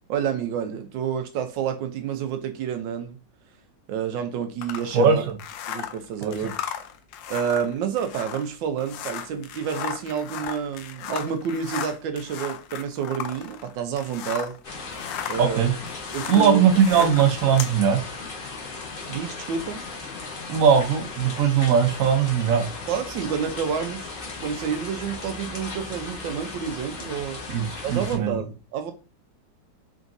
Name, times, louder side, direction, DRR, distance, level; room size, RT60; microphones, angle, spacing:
voice 1, 0.1-3.2 3.9-5.2 5.7-6.5 7.3-14.6 15.3-15.7 16.1-16.7 17.0-17.2 19.1-19.8 22.9-24.2 24.4-27.4 27.8-28.9, right 7 dB, 80° right, 1.3 m, -29 dB
sound 1, 4.6-14.6 14.9-17.8, left 9 dB, 85° left, 1.3 m, -35 dB
voice 2, 4.9-5.3 6.2-6.5 15.4-15.7 16.3-18.0 20.5-22.7 27.5-28.3, right 7 dB, 60° right, 1.0 m, -20 dB
sound 2, 14.6-28.2, left 4 dB, 40° left, 0.9 m, -36 dB
3.9 x 3.5 x 2.5 m
omnidirectional pair, 2.0 m